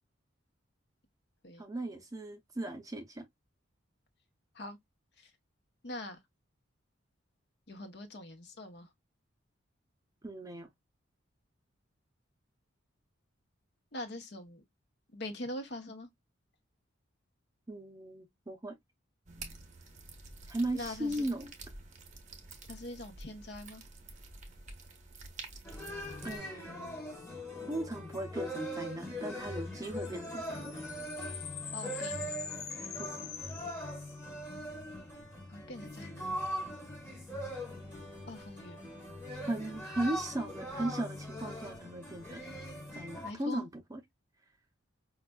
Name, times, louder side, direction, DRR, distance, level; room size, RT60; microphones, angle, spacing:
voice 1, 1.6-3.2 10.2-10.7 17.7-18.8 20.5-21.5 26.2-27.0 27.7-30.8 33.0-33.2 39.5-42.4 42.9-44.0, right 1 dB, 15° right, 0.6 m, -37 dB
voice 2, 5.8-6.2 7.7-8.9 13.9-14.6 15.1-16.1 20.7-21.3 22.7-23.8 31.7-32.4 35.5-36.4 38.3-38.8 39.8-40.0 43.2-43.7, left 1 dB, 55° left, 0.8 m, -43 dB
sound 1, 19.3-26.4, right 3 dB, 35° right, 0.9 m, -49 dB
sound 2, 25.6-43.3, equal, 10° left, 1.0 m, -41 dB
sound 3, 29.8-34.5, left 8 dB, 90° left, 0.8 m, -44 dB
5.2 x 2.4 x 2.2 m
head